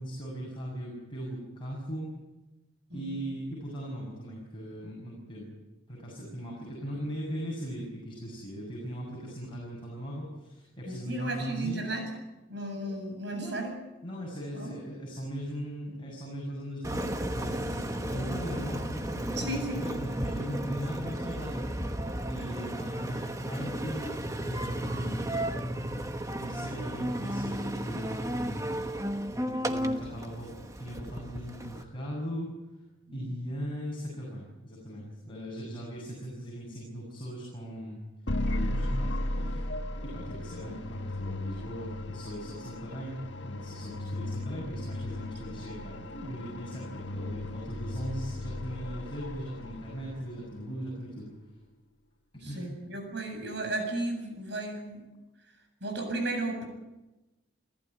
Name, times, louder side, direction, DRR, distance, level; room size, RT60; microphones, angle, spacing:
voice 1, 0.0-2.1 2.9-5.5 5.9-12.0 12.8-12.9 13.3-13.6 14.0-21.9 22.3-25.4 26.4-28.8 29.3-32.5 33.1-38.0 38.4-39.6 40.0-51.3 52.5-52.7, equal, 25° left, -4 dB, 7.2 m, -39 dB
voice 2, 10.8-12.0 12.5-13.7 14.5-14.7 18.1-18.3 19.4-19.8 33.2-33.3 39.4-39.6 52.4-55.1 55.8-56.6, right 2 dB, 60° right, 4 dB, 7.8 m, -34 dB
Engine, 16.8-31.8, right 1 dB, 15° right, 1.2 m, -34 dB
sound 1, 38.3-50.4, left 1 dB, 60° left, 1.6 m, -36 dB
29.5 x 15.0 x 9.5 m, 1.1 s
head